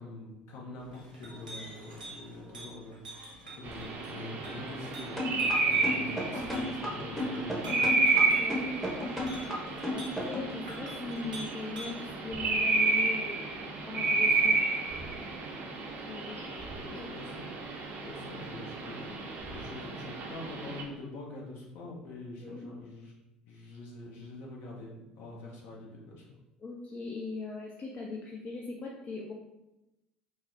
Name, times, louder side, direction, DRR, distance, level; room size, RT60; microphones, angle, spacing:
voice 1, 0.0-7.9 16.8-17.5 18.0-26.2, left 2 dB, 55° left, -2 dB, 0.9 m, -45 dB
Chink clink, 0.8-12.1, right 1 dB, 85° right, 0.7 m, -47 dB
sound 1, 3.6-20.8, right 3 dB, 45° right, 0.5 m, -31 dB
sound 2, 5.2-10.5, left 1 dB, 5° left, 0.9 m, -33 dB
voice 2, 8.2-8.8 9.9-13.6 13.8-14.6 16.1-16.9 22.4-22.7 26.6-29.3, left 3 dB, 35° left, -1 dB, 0.4 m, -40 dB
3.8 x 2.0 x 2.6 m, 0.96 s
figure-of-eight pair, 60°, 4 cm